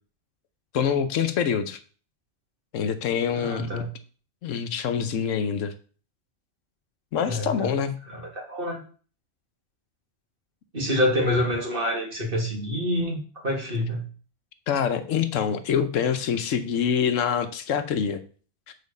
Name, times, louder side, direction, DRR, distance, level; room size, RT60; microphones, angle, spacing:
voice 1, 0.7-1.8 2.7-3.7 4.4-5.7 7.1-8.0 14.7-18.2, left 7 dB, 85° left, 10 dB, 1.1 m, -25 dB
voice 2, 3.4-3.9 7.2-7.7 8.1-8.8 10.7-14.0, left 1 dB, 45° right, -1 dB, 2.2 m, -27 dB
6.9 x 4.5 x 5.3 m, 0.41 s
omnidirectional pair, 1.3 m